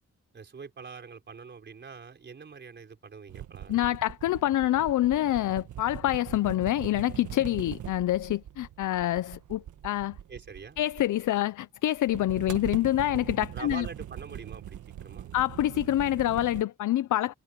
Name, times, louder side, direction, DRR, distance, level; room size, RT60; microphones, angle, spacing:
voice 1, 0.3-4.0 10.3-10.8 13.5-15.4, right 5 dB, 35° right, 4.4 m, -44 dB
sound 1, 3.3-11.4 12.0-16.6, right 11 dB, 85° right, 1.4 m, -41 dB
voice 2, 3.7-10.2 10.8-13.9 15.3-17.3, left 13 dB, 90° left, 0.6 m, -26 dB
wide cardioid pair, 165°, 30 cm